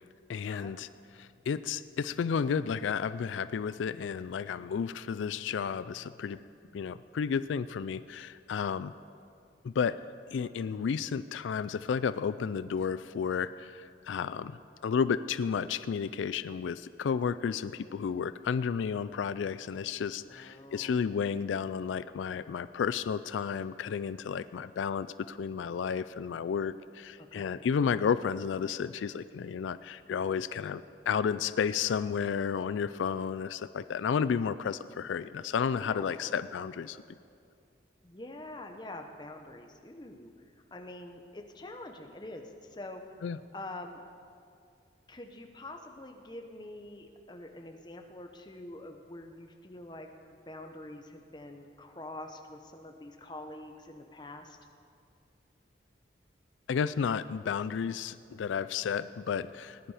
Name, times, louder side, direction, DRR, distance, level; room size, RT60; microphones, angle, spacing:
voice 1, 0.3-0.9 1.2-6.4 6.7-8.9 9.6-10.0 10.3-37.0 43.2-43.4 56.7-59.9, left 6 dB, 90° left, 14 dB, 0.3 m, -32 dB
voice 2, 20.3-20.9 27.2-27.6 35.8-36.3 38.0-40.3 40.7-43.0 43.5-44.0 45.1-50.1 50.5-54.6, left 1 dB, 25° left, 4 dB, 0.9 m, -45 dB
18.5 x 10.0 x 4.9 m, 2.4 s
head